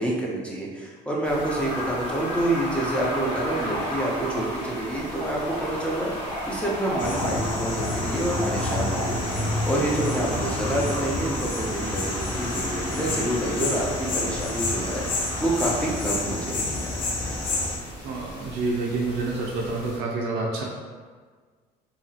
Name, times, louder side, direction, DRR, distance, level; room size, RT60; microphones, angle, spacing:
voice 1, 0.0-6.1 6.5-15.0 15.4-16.8, right 1 dB, 5° left, -4 dB, 0.5 m, -28 dB
sound 1, 1.2-20.0, equal, 85° left, 1.0 m, -42 dB
sound 2, 1.2-16.0, equal, 25° left, 1.3 m, -34 dB
sound 3, 7.0-17.8, left 2 dB, 50° left, 0.6 m, -29 dB
voice 2, 18.0-20.6, right 3 dB, 75° right, -2 dB, 0.4 m, -28 dB
2.7 x 2.3 x 2.7 m, 1.5 s
cardioid pair, 110°, 17 cm